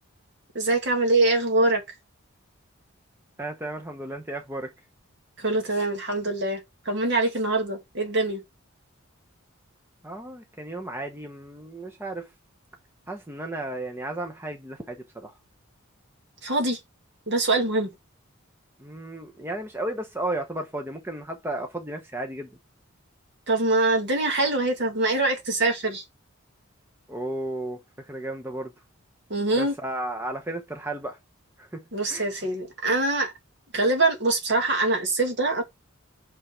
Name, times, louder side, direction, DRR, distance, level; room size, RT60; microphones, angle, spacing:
voice 1, 0.5-1.8 5.4-8.4 16.4-16.8 17.3-17.9 23.5-26.0 29.3-29.7 31.9-33.3 33.7-35.6, right 2 dB, 55° right, 2.1 m, -24 dB
voice 2, 3.4-4.7 10.0-12.3 13.1-15.4 18.8-22.5 27.1-28.7 29.5-31.2 31.6-31.8 32.1-32.2, right 1 dB, 10° right, 0.8 m, -34 dB
6.1 x 5.6 x 4.4 m
head